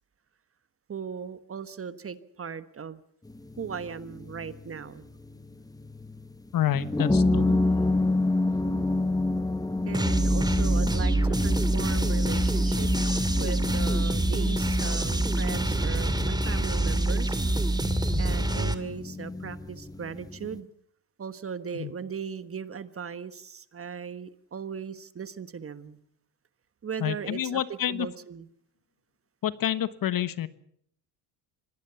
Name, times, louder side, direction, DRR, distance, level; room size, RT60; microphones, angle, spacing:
voice 1, 0.9-3.0 3.6-5.1 7.3-7.7 9.8-12.9 13.4-17.4 18.2-20.7 21.2-26.0 26.8-28.5, right 6 dB, 30° right, 13 dB, 1.4 m, -38 dB
sound 1, 3.3-20.6, left 2 dB, 10° left, 1.3 m, -29 dB
voice 2, 6.5-7.5 18.1-18.3 21.7-21.9 27.0-28.1 29.4-30.5, left 11 dB, 50° left, 15 dB, 1.4 m, -28 dB
sound 2, 9.9-18.7, right 2 dB, 10° right, 2.4 m, -26 dB
25.0 x 19.0 x 7.0 m, 0.67 s
cardioid pair, 100°, 45 cm